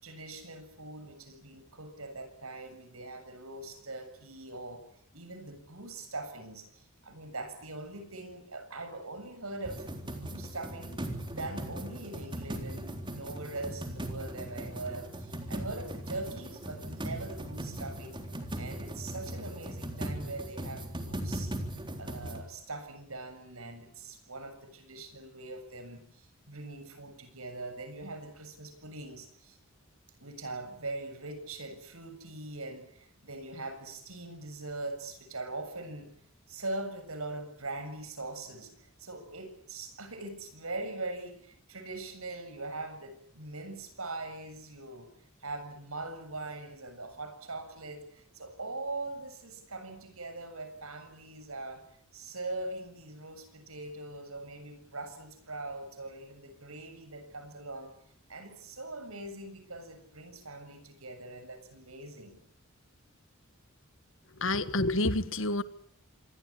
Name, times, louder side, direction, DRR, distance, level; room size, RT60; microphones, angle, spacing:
voice 1, 0.0-4.8 5.1-18.2 18.6-21.5 22.0-29.6 30.2-36.1 36.5-45.1 45.4-51.8 52.1-57.9 58.3-62.4, right 2 dB, 90° right, 7.1 m, -42 dB
sound 1, 9.6-22.4, right 1 dB, 25° right, 3.8 m, -39 dB
voice 2, 64.4-65.6, left 2 dB, 65° left, 1.7 m, -28 dB
26.5 x 21.5 x 8.6 m
head